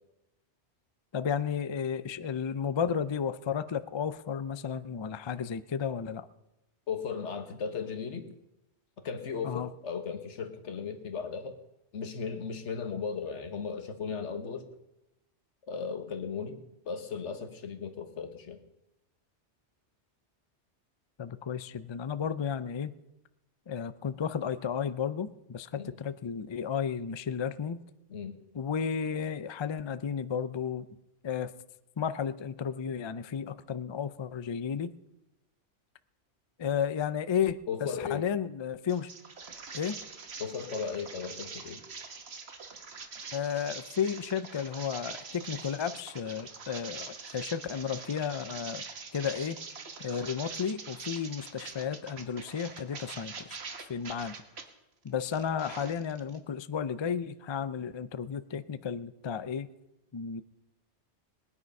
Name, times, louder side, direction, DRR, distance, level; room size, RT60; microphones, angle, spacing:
voice 1, 1.1-6.3 9.4-9.7 21.2-22.9 23.7-27.8 28.5-30.9 31.2-31.5 32.0-34.9 36.6-39.1 39.7-40.0 43.3-48.8 49.1-49.6 50.0-53.6 53.9-54.4 55.0-59.7 60.1-60.4, left 7 dB, 45° left, 13 dB, 0.3 m, -33 dB
voice 2, 6.9-8.3 9.0-11.6 11.9-14.7 15.7-18.6 25.8-25.9 28.1-28.4 37.7-38.3 40.4-41.8, left 6 dB, 85° left, 7 dB, 1.5 m, -36 dB
sound 1, 38.9-54.6 55.1-56.4, right 4 dB, 65° right, 1.5 m, -44 dB
19.5 x 9.7 x 5.4 m, 0.94 s
omnidirectional pair, 1.2 m